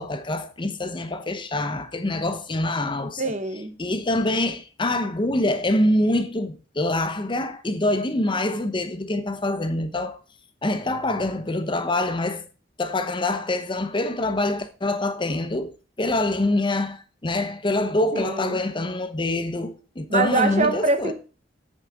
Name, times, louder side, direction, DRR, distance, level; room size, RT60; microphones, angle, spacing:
voice 1, 0.0-3.2 3.8-10.2 10.6-12.5 12.8-21.1, left 2 dB, 25° left, 0.9 m, -25 dB
voice 2, 3.2-3.7 18.1-18.6 20.1-21.1, right 3 dB, 40° right, 1.2 m, -24 dB
8.4 x 6.5 x 3.6 m
head